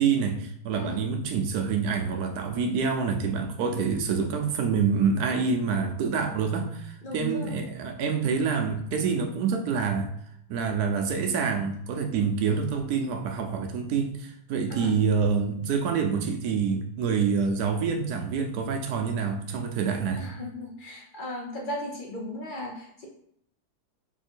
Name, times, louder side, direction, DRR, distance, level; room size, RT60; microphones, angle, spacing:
voice 1, 0.0-10.1 10.5-20.3, right 5 dB, 70° right, 5 dB, 1.2 m, -27 dB
voice 2, 0.7-1.1 7.0-7.5 14.7-15.0 20.2-23.1, left 1 dB, 55° left, 0 dB, 0.5 m, -36 dB
4.2 x 2.7 x 4.4 m, 0.71 s
omnidirectional pair, 1.8 m